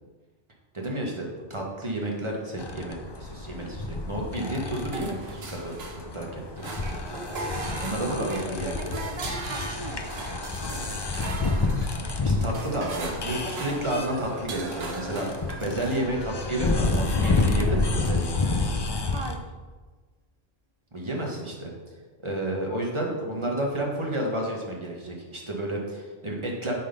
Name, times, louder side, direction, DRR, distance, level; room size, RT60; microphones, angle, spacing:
voice 1, 0.7-6.7 7.8-8.7 12.2-18.5 20.9-21.7 22.2-26.8, right 1 dB, 30° right, -1 dB, 1.4 m, -31 dB
sound 1, 2.6-19.3, left 3 dB, 30° left, 0.5 m, -29 dB
sound 2, 4.9-6.3 6.6-16.0, right 3 dB, 75° right, 1.2 m, -38 dB
voice 2, 8.0-10.5 19.1-19.5, right 3 dB, 45° right, 4 dB, 0.4 m, -39 dB
8.4 x 3.9 x 5.2 m, 1.4 s
omnidirectional pair, 1.1 m